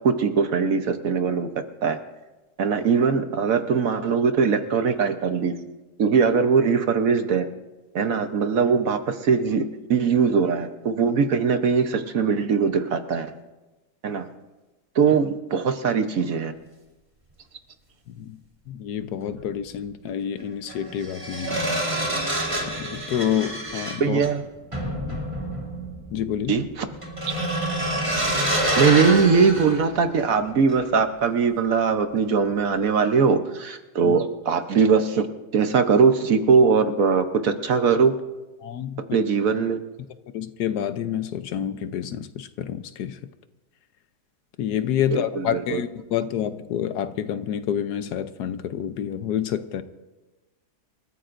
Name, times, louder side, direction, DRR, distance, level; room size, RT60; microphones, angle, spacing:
voice 1, 0.0-1.5 1.8-2.0 2.6-5.5 6.0-7.5 7.9-13.3 14.0-14.3 14.9-16.5 24.0-24.4 26.5-26.9 28.8-35.3 35.5-38.1 39.1-39.8 45.1-45.8, right 5 dB, 60° right, 8 dB, 1.2 m, -21 dB
voice 2, 18.1-18.4 18.7-21.7 22.8-24.2 25.0-25.2 26.1-26.6 34.0-34.2 38.6-39.2 40.3-43.2 44.6-49.8, left 9 dB, 75° left, 11 dB, 1.2 m, -28 dB
sound 1, 19.3-19.4 20.7-30.4 30.7-30.9, right 1 dB, 20° right, 2.4 m, -27 dB
28.5 x 14.5 x 2.6 m, 1.1 s
omnidirectional pair, 1.8 m